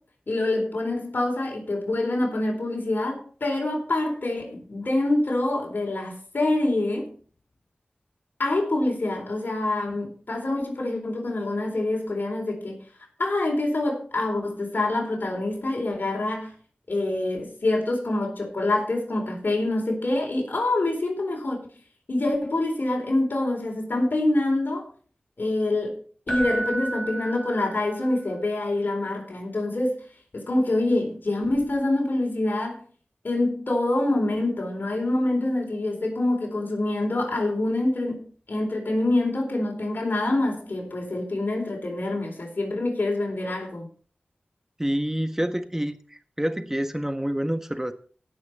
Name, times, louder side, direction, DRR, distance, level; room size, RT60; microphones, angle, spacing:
voice 1, 0.3-7.1 8.4-12.8 13.2-16.5 16.9-21.7 22.1-24.9 25.4-26.0 26.3-30.0 30.3-32.8 33.2-38.2 38.5-43.9, left 2 dB, 65° left, 0 dB, 4.1 m, -26 dB
Keyboard (musical), 26.3-28.2 31.5-31.6, right 2 dB, 10° left, 3.2 m, -32 dB
voice 2, 44.8-47.9, equal, 10° right, 8 dB, 1.4 m, -27 dB
17.5 x 6.3 x 4.4 m, 0.42 s
cardioid pair, 45°, 3 cm